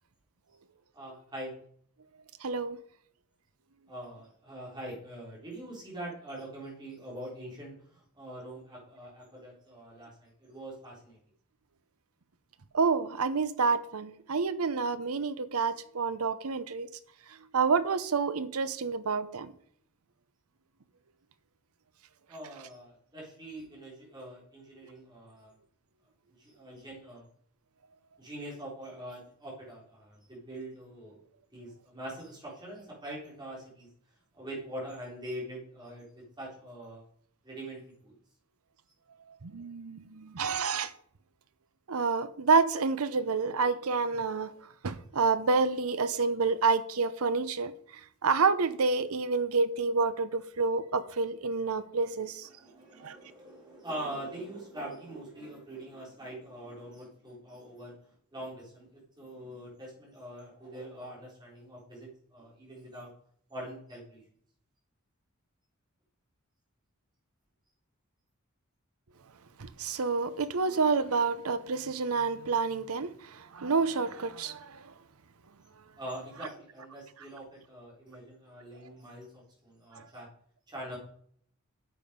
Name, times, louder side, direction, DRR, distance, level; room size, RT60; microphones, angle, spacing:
voice 1, 0.9-1.5 3.9-11.2 22.3-25.5 26.4-27.2 28.2-31.2 31.5-33.9 34.3-37.0 37.4-38.1 52.2-58.0 58.3-63.1 63.5-64.2 76.0-80.3 80.7-81.0, right 1 dB, 20° right, 4.0 m, -43 dB
voice 2, 2.4-2.8 12.7-16.9 17.5-19.5 39.4-40.9 41.9-44.5 44.8-47.7 48.2-52.5 53.0-53.2 69.6-74.8 80.0-80.1, right 4 dB, 85° right, 0.8 m, -28 dB
9.0 x 7.3 x 5.2 m
head